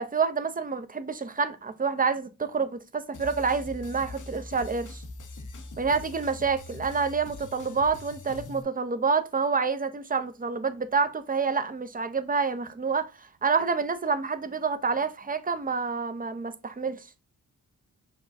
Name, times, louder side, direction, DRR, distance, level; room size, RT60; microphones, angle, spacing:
voice 1, 0.0-5.0 5.8-17.1, right 5 dB, 25° right, 0.6 m, -28 dB
sound 1, 3.1-8.6, left 3 dB, 60° left, 0.8 m, -42 dB
5.8 x 2.3 x 2.6 m
cardioid pair, 60°, 34 cm